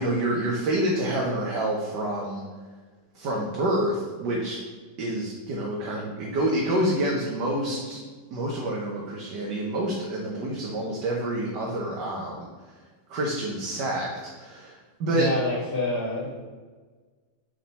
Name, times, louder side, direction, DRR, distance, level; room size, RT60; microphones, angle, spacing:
voice 1, 0.0-2.4 3.1-4.6 5.0-8.0 8.3-12.5 13.1-14.1 14.3-15.3, right 1 dB, 65° right, -2 dB, 1.6 m, -27 dB
voice 2, 15.1-16.4, left 1 dB, 55° left, -11 dB, 2.5 m, -27 dB
9.4 x 3.9 x 4.2 m, 1.4 s
omnidirectional pair, 2.1 m